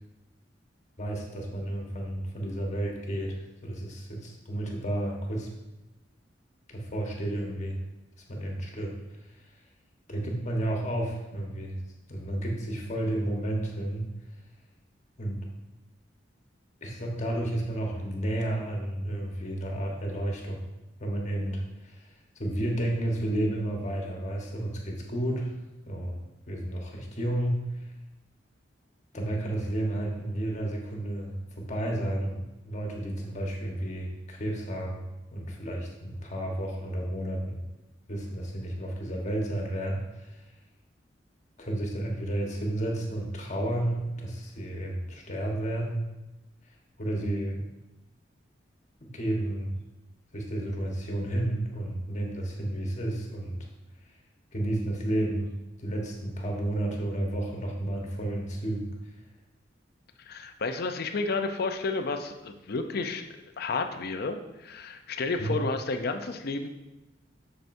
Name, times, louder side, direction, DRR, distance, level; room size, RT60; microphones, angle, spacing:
voice 1, 1.0-5.5 6.7-7.8 8.3-8.9 10.1-11.8 12.1-14.1 15.2-15.4 16.8-20.6 21.0-25.5 25.9-26.2 26.5-27.9 29.1-35.0 35.3-37.6 38.1-40.4 41.6-46.0 47.0-47.6 49.0-49.7 50.3-53.6 54.5-55.5 55.8-58.9 65.4-65.6, right 1 dB, 40° left, 0 dB, 1.3 m, -31 dB
voice 2, 60.3-63.2 63.6-66.7, left 3 dB, 55° left, 6 dB, 0.6 m, -31 dB
7.7 x 6.7 x 2.7 m, 0.99 s
head